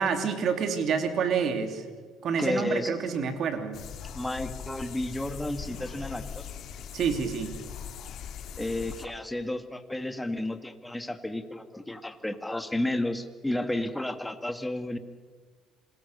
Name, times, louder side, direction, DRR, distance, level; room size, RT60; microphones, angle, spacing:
voice 1, 0.0-1.9 2.2-3.8 6.9-7.5, right 6 dB, 55° right, 7 dB, 3.0 m, -28 dB
voice 2, 2.4-2.9 4.1-6.5 8.6-15.0, left 1 dB, 10° left, 8 dB, 1.9 m, -32 dB
sound 1, 3.7-9.1, left 8 dB, 55° left, 1.9 m, -41 dB
Acoustic guitar / Strum, 5.5-9.5, equal, 85° right, 5.9 m, -55 dB
27.0 x 20.5 x 6.9 m, 1.6 s
supercardioid pair, 90°, 0 cm